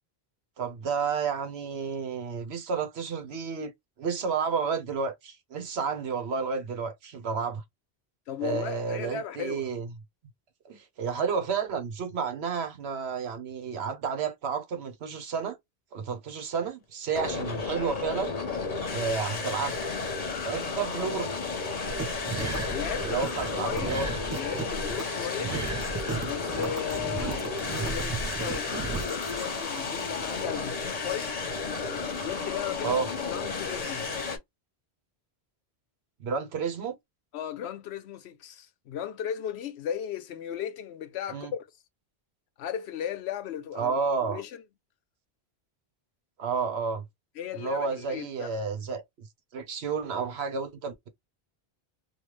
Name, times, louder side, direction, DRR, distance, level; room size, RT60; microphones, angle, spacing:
voice 1, 0.6-3.7 4.0-7.6 8.4-9.9 10.6-15.6 15.9-18.3 18.9-19.8 20.4-21.3 23.0-24.1 25.4-25.6 27.2-27.4 32.8-33.1 36.2-37.0 41.3-41.5 43.7-44.4 46.4-47.0 47.5-49.3 49.5-51.1, right 5 dB, 80° right, 1.1 m, -31 dB
voice 2, 8.3-9.7 22.7-23.2 23.6-23.9 24.4-25.6 26.2-31.3 32.2-34.1 37.3-41.7 42.6-43.9 44.2-44.6 47.4-48.6, left 9 dB, 85° left, 0.9 m, -36 dB
sound 1, 17.1-34.4, left 4 dB, 40° left, 0.8 m, -33 dB
sound 2, 21.8-29.4, right 3 dB, 20° right, 0.6 m, -35 dB
3.1 x 2.3 x 3.1 m
omnidirectional pair, 1.1 m